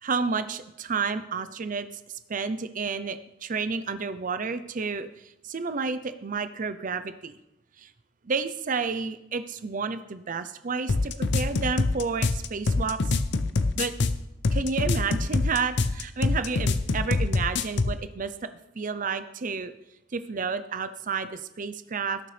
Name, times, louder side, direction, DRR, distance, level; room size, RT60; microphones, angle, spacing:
voice 1, 0.0-7.3 7.8-7.9 8.2-13.2 13.8-13.9 14.5-18.3 18.8-19.7 20.1-22.2, right 5 dB, 40° right, 11 dB, 0.6 m, -31 dB
sound 1, 10.9-18.0, left 3 dB, 60° left, 0.6 m, -25 dB
17.5 x 6.7 x 3.3 m, 0.87 s
head